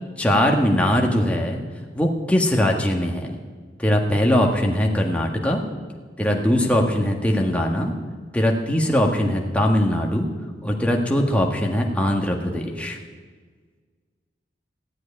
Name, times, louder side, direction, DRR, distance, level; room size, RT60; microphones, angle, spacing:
voice 1, 0.2-1.6 1.9-3.3 3.8-5.6 6.2-7.9 8.3-10.3 10.6-13.0, left 1 dB, 10° left, 0 dB, 1.5 m, -21 dB
16.0 x 8.0 x 9.8 m, 1.5 s
head